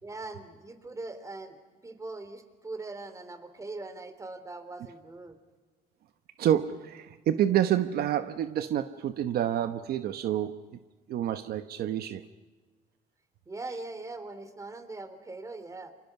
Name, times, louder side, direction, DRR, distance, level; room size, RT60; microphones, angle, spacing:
voice 1, 0.0-5.4 13.5-15.9, right 3 dB, 20° right, 10 dB, 3.1 m, -41 dB
voice 2, 6.4-10.8 11.1-12.2, right 11 dB, 65° right, 10 dB, 1.1 m, -28 dB
29.5 x 26.5 x 6.0 m, 1.3 s
cardioid pair, 110°, 17 cm